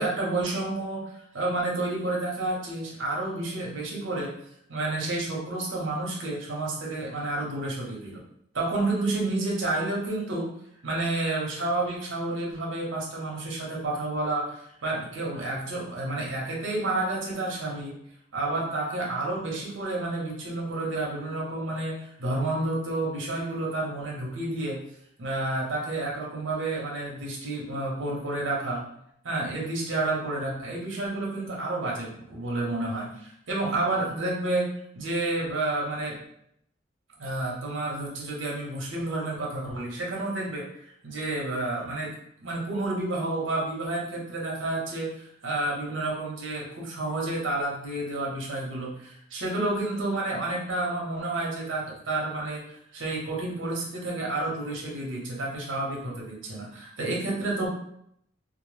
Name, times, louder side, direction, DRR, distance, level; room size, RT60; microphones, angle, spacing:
voice 1, 0.0-4.3 4.7-8.2 8.5-10.5 10.8-18.0 18.3-24.8 25.2-28.8 29.2-34.7 34.9-36.2 37.2-42.1 42.4-52.6 52.9-57.7, right 2 dB, 85° right, -2 dB, 0.7 m, -30 dB
2.0 x 2.0 x 3.1 m, 0.73 s
head